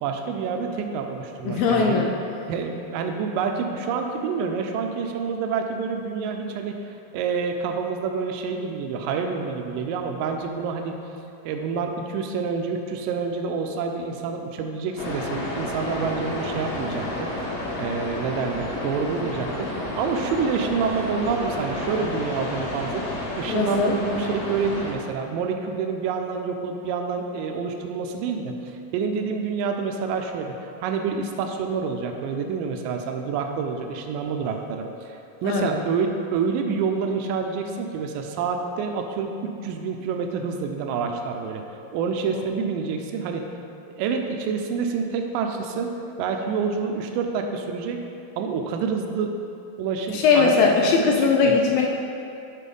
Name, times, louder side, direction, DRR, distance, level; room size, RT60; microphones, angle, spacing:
voice 1, 0.0-2.0 2.5-11.0 11.4-23.0 23.4-41.6 41.9-43.5 43.9-45.9 46.2-48.0 48.4-49.3 49.8-50.7 51.0-51.6, right 5 dB, 85° right, 4 dB, 2.0 m, -28 dB
voice 2, 1.5-2.2 23.5-24.0 35.4-35.8 42.3-42.4 50.1-51.9, left 5 dB, 80° left, 1 dB, 2.1 m, -20 dB
sound 1, 15.0-24.9, left 1 dB, 60° left, 1.6 m, -31 dB
10.0 x 4.1 x 5.3 m, 2.6 s
omnidirectional pair, 4.5 m